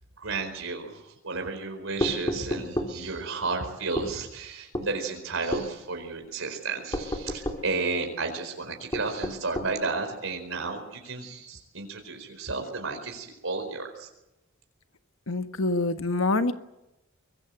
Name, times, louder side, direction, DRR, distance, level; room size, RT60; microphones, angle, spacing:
voice 1, 0.2-14.1, right 4 dB, 70° right, 4 dB, 4.5 m, -32 dB
sound 1, 2.0-3.0 4.0-4.1 4.7-4.9 5.5-5.7 6.9-7.7 8.9-9.8, left 1 dB, 20° left, 3.0 m, -30 dB
voice 2, 15.3-16.5, left 2 dB, 70° left, 8 dB, 1.5 m, -25 dB
24.5 x 22.0 x 7.9 m, 0.93 s
head